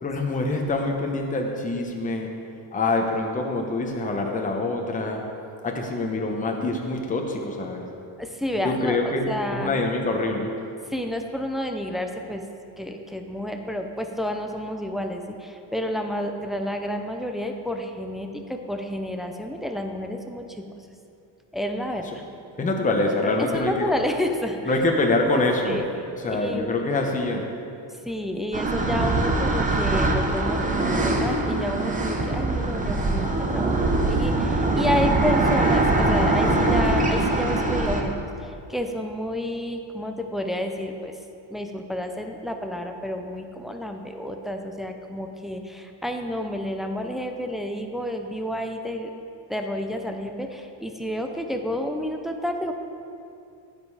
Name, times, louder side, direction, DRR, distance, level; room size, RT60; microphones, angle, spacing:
voice 1, 0.0-2.3 2.7-5.2 5.6-7.8 8.6-10.5 22.6-23.9 24.7-25.9 26.2-27.5, left 2 dB, 15° left, 1 dB, 0.9 m, -25 dB
voice 2, 8.2-9.7 10.9-12.4 12.8-20.7 21.5-22.1 23.2-24.7 25.3-25.9 26.3-26.8 28.1-41.1 41.5-49.1 49.5-52.7, equal, ahead, 4 dB, 0.4 m, -30 dB
sound 1, 28.5-38.0, right 2 dB, 15° right, 0.8 m, -22 dB
15.0 x 5.3 x 4.8 m, 2.6 s
cardioid pair, 150°, 45 cm